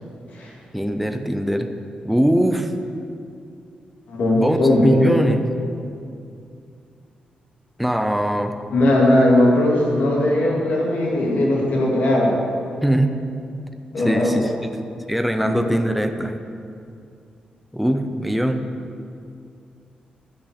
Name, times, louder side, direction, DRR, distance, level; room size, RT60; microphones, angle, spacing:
voice 1, 0.7-1.7 2.0-2.7 4.4-5.4 7.8-8.5 12.8-13.1 14.0-16.3 17.7-18.6, equal, ahead, 6 dB, 0.5 m, -21 dB
voice 2, 4.1-5.2 8.7-12.4 13.9-14.4 15.4-15.7, left 1 dB, 70° left, -3 dB, 2.1 m, -18 dB
11.0 x 6.1 x 8.1 m, 2.5 s
wide cardioid pair, 170°, 3 cm